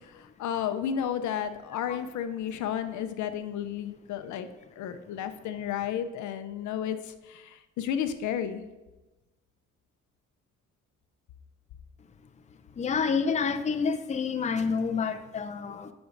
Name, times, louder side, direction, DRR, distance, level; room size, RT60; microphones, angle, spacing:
voice 1, 0.0-4.5 4.8-8.6, left 9 dB, 75° left, 9 dB, 0.6 m, -32 dB
voice 2, 12.8-15.9, left 5 dB, 25° left, 9 dB, 0.5 m, -28 dB
11.0 x 6.1 x 2.6 m, 1.1 s
cardioid pair, 90°, 30 cm